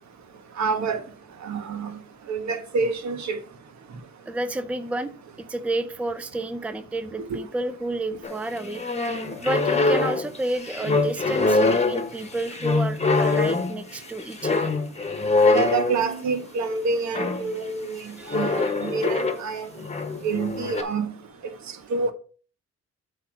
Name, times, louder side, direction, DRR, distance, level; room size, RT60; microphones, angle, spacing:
voice 1, 0.6-1.0 1.4-2.0 2.3-3.4 7.3-7.4 10.9-11.0 15.5-19.7 20.2-21.1 21.9-22.1, right 4 dB, 65° right, 1.3 m, -27 dB
voice 2, 4.3-5.1 5.4-8.8 9.4-14.7 18.0-18.8, right 2 dB, 5° right, 0.5 m, -30 dB
sound 1, 8.2-16.4 17.1-17.5 18.3-19.4 19.8-20.8, left 3 dB, 20° left, 1.1 m, -24 dB
7.9 x 3.2 x 6.1 m
cardioid pair, 90°, 30 cm